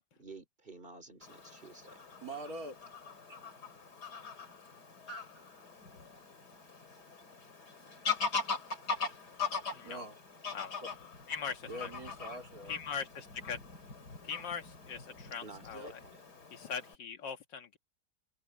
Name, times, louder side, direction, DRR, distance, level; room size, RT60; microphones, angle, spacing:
voice 1, 0.2-2.0 15.4-16.2, right 3 dB, 30° right, 3.6 m, -51 dB
Fowl / Bird vocalization bird call bird song, 1.2-16.9, left 5 dB, 65° left, 4.0 m, -41 dB
voice 2, 2.2-2.9 3.3-3.4 9.8-10.2 10.8-10.9 11.7-12.8 15.7-15.9, right 1 dB, 55° right, 4.2 m, -44 dB
voice 3, 9.7-10.0 10.5-10.7 11.3-11.9 12.7-13.6 14.2-16.0 16.5-17.8, left 6 dB, 85° left, 2.3 m, -41 dB
open air
omnidirectional pair, 1.9 m